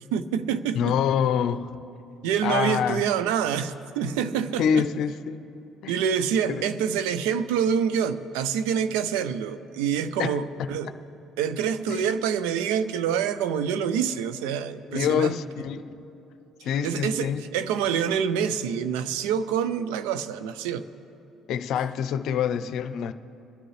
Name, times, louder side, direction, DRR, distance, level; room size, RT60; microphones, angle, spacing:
voice 1, 0.1-0.9 2.2-4.9 5.9-10.9 11.4-15.3 16.8-20.8, right 8 dB, 85° right, 12 dB, 0.5 m, -26 dB
voice 2, 0.7-1.8 2.4-3.1 4.6-5.4 5.8-6.0 6.5-6.7 10.2-10.3 10.6-10.7 11.9-12.1 14.9-16.0 16.6-17.4 21.5-23.1, left 8 dB, 70° left, 11 dB, 0.6 m, -26 dB
25.5 x 10.0 x 3.2 m, 2.8 s
supercardioid pair, 65°, 0 cm